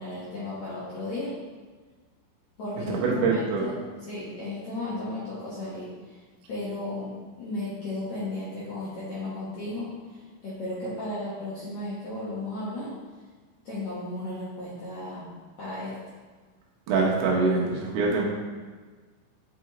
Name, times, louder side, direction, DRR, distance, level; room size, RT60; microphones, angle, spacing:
voice 1, 0.0-1.3 2.6-3.7 4.0-6.2 6.5-12.9 13.6-15.3 15.6-15.9, left 1 dB, 70° left, -10 dB, 1.7 m, -34 dB
voice 2, 2.9-3.6 16.9-18.2, right 4 dB, 70° right, -3 dB, 2.8 m, -24 dB
7.4 x 5.3 x 3.0 m, 1.4 s
omnidirectional pair, 5.2 m